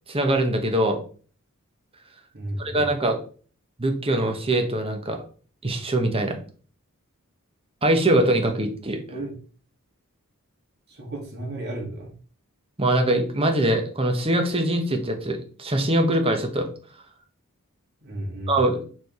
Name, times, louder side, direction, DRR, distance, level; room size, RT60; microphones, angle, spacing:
voice 1, 0.1-1.0 2.6-3.2 3.8-5.2 5.6-6.4 7.8-9.0 12.8-16.7 18.5-18.9, right 1 dB, 25° right, 4 dB, 1.2 m, -22 dB
voice 2, 2.3-2.9 9.1-9.3 10.9-12.1 18.0-18.6, right 1 dB, 50° right, -2 dB, 1.9 m, -33 dB
5.0 x 4.7 x 4.9 m, 0.41 s
head